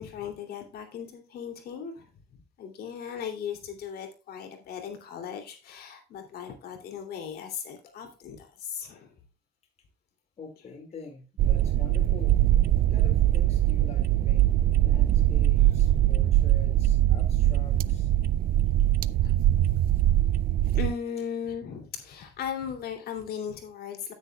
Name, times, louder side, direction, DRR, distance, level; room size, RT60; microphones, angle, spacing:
voice 1, 0.0-2.1 2.6-9.1 15.6-16.0 17.7-17.9 19.2-19.7 20.1-20.2 20.7-24.1, left 7 dB, 65° left, 4 dB, 2.8 m, -37 dB
voice 2, 10.4-12.4 12.7-14.5 14.8-18.1, left 4 dB, 40° left, 4 dB, 2.2 m, -46 dB
sound 1, 11.4-20.9, right 13 dB, 60° right, 0.4 m, -22 dB
10.0 x 9.7 x 2.3 m, 0.31 s
cardioid pair, 110°, 17 cm